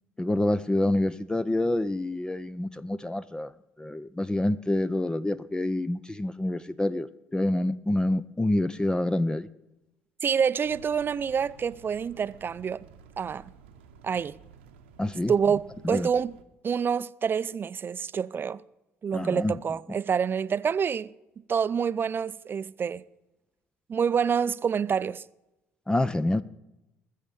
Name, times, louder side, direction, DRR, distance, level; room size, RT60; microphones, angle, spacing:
voice 1, 0.2-3.5 3.8-9.5 15.0-15.3 15.8-16.1 19.1-19.6 25.9-26.4, left 1 dB, 10° left, 0.5 m, -27 dB
voice 2, 10.2-12.8 13.2-13.4 14.0-14.4 15.3-16.4 16.6-18.6 19.0-21.1 21.5-23.0 23.9-25.2, right 7 dB, 35° right, 0.5 m, -27 dB
sound 1, 10.6-16.4, right 6 dB, 80° right, 1.0 m, -52 dB
20.0 x 7.4 x 6.8 m
figure-of-eight pair, 50°, 6 cm